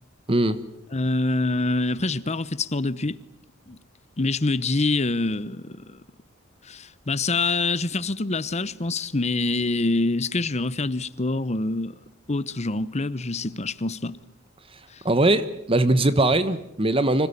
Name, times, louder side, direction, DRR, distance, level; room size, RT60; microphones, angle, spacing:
voice 1, 0.3-0.6 14.7-14.8 15.0-17.3, right 2 dB, 25° right, 1.1 m, -21 dB
voice 2, 0.9-3.2 3.7-3.8 4.2-6.0 6.6-12.0 12.3-14.2 14.9-15.0, left 2 dB, 35° left, 1.0 m, -25 dB
26.0 x 17.0 x 9.9 m
head